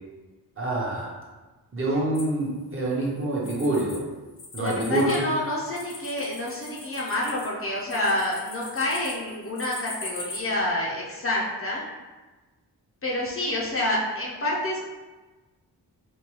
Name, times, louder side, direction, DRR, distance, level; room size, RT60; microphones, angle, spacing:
voice 1, 0.6-1.1 1.7-4.0 4.5-5.2, right 2 dB, 35° right, -4 dB, 0.8 m, -26 dB
sound 1, 2.1-4.0 4.3-10.4, left 3 dB, 65° left, 0.8 m, -41 dB
voice 2, 4.6-11.8 13.0-14.8, left 1 dB, 35° left, -4 dB, 0.5 m, -28 dB
4.4 x 2.2 x 3.0 m, 1.2 s
wide cardioid pair, 160°, 39 cm